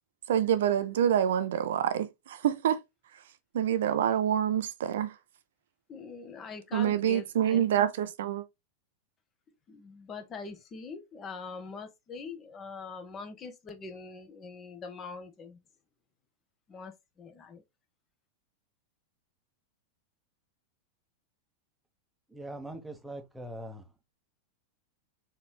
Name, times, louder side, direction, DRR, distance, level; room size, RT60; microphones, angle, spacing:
voice 1, 0.3-2.8 3.1-3.2 3.5-5.2 6.7-8.4, right 10 dB, 60° right, 0.4 m, -27 dB
voice 2, 5.9-7.6 9.7-15.6 16.7-17.6, left 4 dB, 25° left, 0.9 m, -43 dB
voice 3, 22.3-23.8, right 1 dB, 5° right, 0.8 m, -41 dB
4.2 x 3.1 x 2.2 m
figure-of-eight pair, 90°, 0 cm